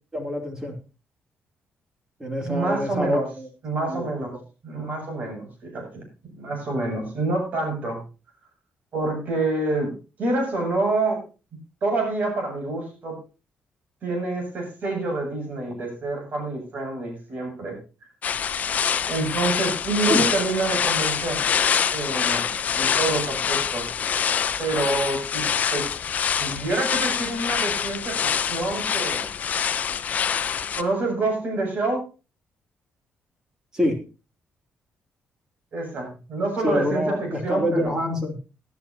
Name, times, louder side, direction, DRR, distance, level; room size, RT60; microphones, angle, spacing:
voice 1, 0.1-0.8 2.2-3.5 3.8-4.1 4.3-4.4 20.1-20.3 33.7-34.0 36.6-38.4, left 1 dB, 15° right, 4 dB, 2.8 m, -26 dB
voice 2, 2.4-3.2 3.6-4.3 4.6-6.0 6.3-8.0 8.9-9.9 10.2-11.2 11.8-13.2 14.0-17.8 19.1-21.4 21.9-23.9 24.6-25.9 26.4-29.3 30.7-32.0 35.7-37.9, right 2 dB, 50° right, 2 dB, 7.8 m, -27 dB
sound 1, 18.2-30.8, left 7 dB, 50° left, 0.8 m, -25 dB
18.0 x 10.5 x 2.9 m, 0.33 s
cardioid pair, 125°, 3 cm